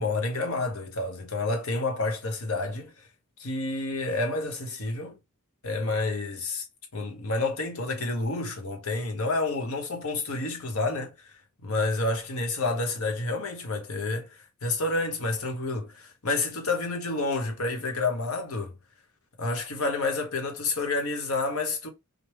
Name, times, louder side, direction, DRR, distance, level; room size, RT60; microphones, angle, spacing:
voice 1, 0.0-2.9 3.4-5.2 5.6-6.6 6.9-18.7 19.4-21.9, left 3 dB, 70° left, 1.1 m, -29 dB
5.2 x 2.2 x 3.0 m
head